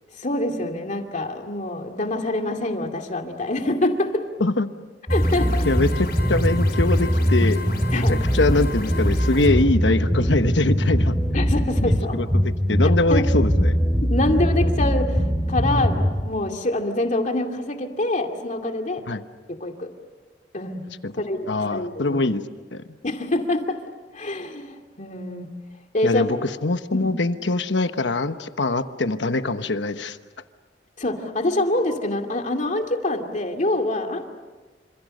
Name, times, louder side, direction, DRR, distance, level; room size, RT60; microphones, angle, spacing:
voice 1, 0.2-4.2 5.1-5.7 7.9-8.1 11.3-12.2 13.1-13.3 14.0-19.0 19.5-19.9 20.5-20.8 21.2-22.2 23.0-23.8 24.1-25.5 25.9-26.5 26.9-27.1 31.0-34.2, left 1 dB, 45° left, 4 dB, 2.5 m, -25 dB
sound 1, 5.1-9.5, left 3 dB, 60° left, 5.2 m, -36 dB
sound 2, 5.1-16.2, equal, 5° right, 2.7 m, -21 dB
voice 2, 5.6-7.6 7.9-11.1 11.8-13.8 19.1-19.2 21.0-21.1 21.5-22.4 22.7-22.8 26.0-30.2, left 2 dB, 80° left, 10 dB, 1.2 m, -23 dB
28.0 x 26.5 x 6.6 m, 1.3 s
head